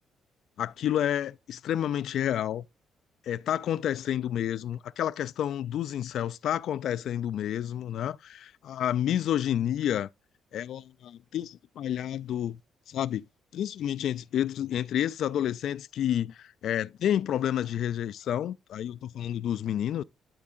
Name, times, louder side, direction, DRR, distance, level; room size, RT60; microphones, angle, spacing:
voice 1, 0.6-2.7 3.2-10.1 10.5-12.6 12.9-13.2 13.5-20.0, left 10 dB, 75° left, 0.3 m, -30 dB
12.0 x 4.6 x 2.5 m
cardioid pair, 90°, 0 cm